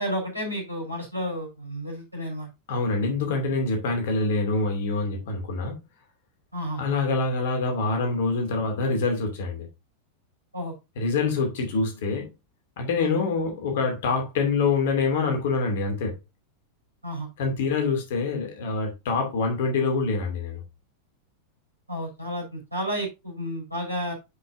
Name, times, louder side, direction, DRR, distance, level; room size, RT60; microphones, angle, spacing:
voice 1, 0.0-2.5 6.5-6.8 10.5-10.7 13.0-13.1 17.0-17.3 21.9-24.1, equal, 85° right, 5.0 m, -31 dB
voice 2, 2.7-5.7 6.8-9.7 11.0-12.3 12.8-16.1 17.4-20.6, left 3 dB, 55° left, 2.6 m, -25 dB
9.7 x 6.0 x 2.7 m
figure-of-eight pair, 90°, 0 cm